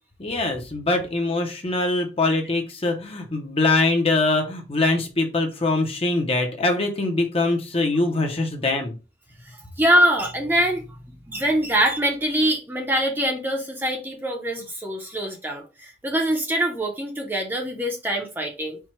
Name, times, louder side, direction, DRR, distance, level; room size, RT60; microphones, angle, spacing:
voice 1, 0.2-8.9, left 2 dB, 30° left, 0.8 m, -23 dB
voice 2, 9.5-10.8 11.3-18.8, right 1 dB, 10° right, 0.7 m, -24 dB
4.6 x 2.3 x 4.3 m
head